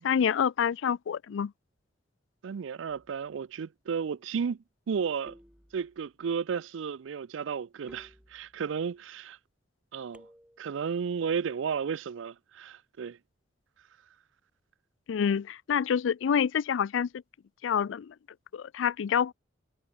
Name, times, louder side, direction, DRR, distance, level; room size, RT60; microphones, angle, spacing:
voice 1, 0.0-1.5 15.1-17.1 17.6-18.1 18.5-19.3, left 7 dB, 80° left, 0.4 m, -27 dB
voice 2, 2.4-4.6 4.9-5.4 5.7-9.4 9.9-10.3 10.6-13.2, right 6 dB, 85° right, 0.4 m, -33 dB
sound 1, 5.3-6.2 7.9-8.8 10.1-10.9, equal, 5° right, 7.3 m, -57 dB
head